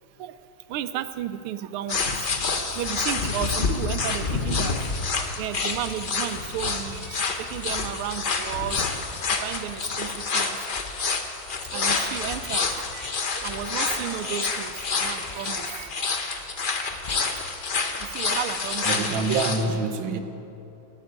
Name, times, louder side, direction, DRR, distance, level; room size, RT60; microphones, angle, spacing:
voice 1, 0.7-4.7 5.4-8.8 9.2-10.7 11.2-11.4 11.7-16.2 16.6-17.5 18.0-19.0, right 11 dB, 85° right, 12 dB, 1.5 m, -34 dB
sound 1, 1.9-19.6, left 4 dB, 50° left, 0.6 m, -28 dB
voice 2, 18.8-20.2, right 4 dB, 70° right, 7 dB, 1.6 m, -26 dB
14.5 x 9.6 x 9.3 m, 2.9 s
omnidirectional pair, 2.3 m